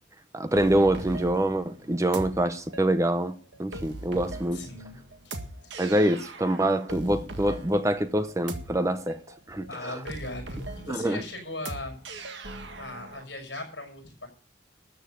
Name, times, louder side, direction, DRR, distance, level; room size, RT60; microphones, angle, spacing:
voice 1, 0.3-3.3 3.6-4.6 5.8-9.2 9.5-10.0 10.9-11.2, right 1 dB, 15° right, 0.7 m, -25 dB
sound 1, 0.6-13.2, right 2 dB, 70° right, 1.9 m, -40 dB
voice 2, 4.5-5.0 5.2-5.4 5.6-5.7 9.6-12.0 12.6-14.3, left 2 dB, 65° left, 5.9 m, -39 dB
13.5 x 7.2 x 9.0 m
head